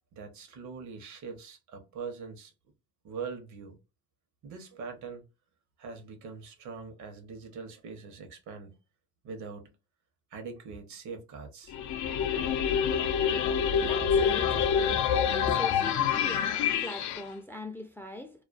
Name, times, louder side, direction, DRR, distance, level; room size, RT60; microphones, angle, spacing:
voice 1, 0.1-2.5 3.0-3.8 4.4-5.2 5.8-8.8 9.2-9.7 10.3-11.7, right 5 dB, 70° right, 0.8 m, -42 dB
sound 1, 11.7-17.2, left 8 dB, 75° left, 0.4 m, -27 dB
voice 2, 13.1-14.8 15.3-18.3, left 1 dB, 10° left, 0.4 m, -40 dB
2.3 x 2.2 x 2.4 m
cardioid pair, 90°, 30 cm